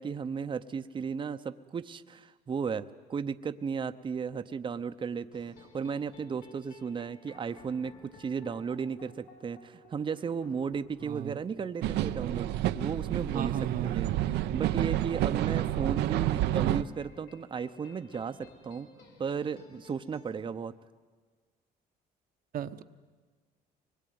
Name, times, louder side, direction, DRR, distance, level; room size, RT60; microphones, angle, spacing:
voice 1, 0.0-13.6 13.8-18.9 19.2-20.7, right 6 dB, 30° right, 10 dB, 0.8 m, -35 dB
sound 1, 5.3-20.3, equal, 80° left, 5.3 m, -55 dB
voice 2, 11.0-11.4 13.3-14.1 22.5-22.8, right 10 dB, 60° right, 8 dB, 1.0 m, -35 dB
sound 2, 11.8-16.8, right 13 dB, 85° right, 0.8 m, -29 dB
24.0 x 21.0 x 9.5 m, 1.4 s
cardioid pair, 110°, 17 cm